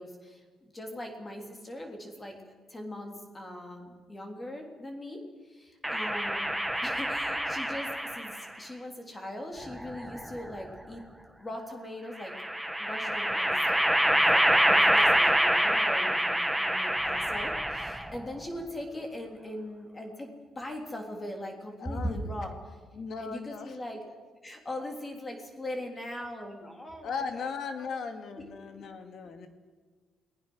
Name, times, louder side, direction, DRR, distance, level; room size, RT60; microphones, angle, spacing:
voice 1, 0.0-6.5 6.8-11.0 11.4-12.3 12.8-22.8 23.2-24.1 24.4-27.5 27.8-27.9 28.8-28.9, left 1 dB, 15° left, 3 dB, 3.3 m, -40 dB
sound 1, 5.8-8.5 9.6-10.6 12.2-18.2, equal, ahead, 1.1 m, -26 dB
voice 2, 21.8-22.3 22.9-23.7 27.0-29.5, left 5 dB, 45° left, 7 dB, 2.3 m, -37 dB
28.5 x 20.0 x 6.3 m, 1.4 s
cardioid pair, 180°, 0 cm